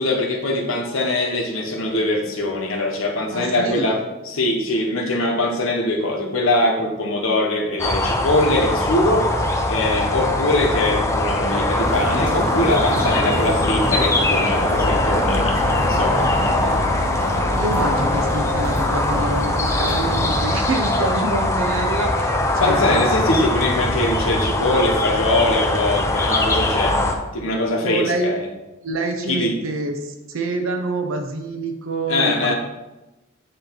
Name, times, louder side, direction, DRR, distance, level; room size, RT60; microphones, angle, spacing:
voice 1, 0.0-4.0 4.3-16.9 22.6-27.0 27.3-28.5 29.3-29.5 32.1-32.5, left 2 dB, 75° left, 1 dB, 1.0 m, -22 dB
voice 2, 3.3-4.0 17.5-23.1 27.8-28.3 28.8-32.5, right 2 dB, 70° right, 4 dB, 0.6 m, -26 dB
sound 1, 7.8-27.1, left 1 dB, 15° left, 0.4 m, -21 dB
sound 2, 11.8-20.4, equal, 20° right, 1.6 m, -28 dB
7.5 x 3.1 x 4.5 m, 1.0 s
head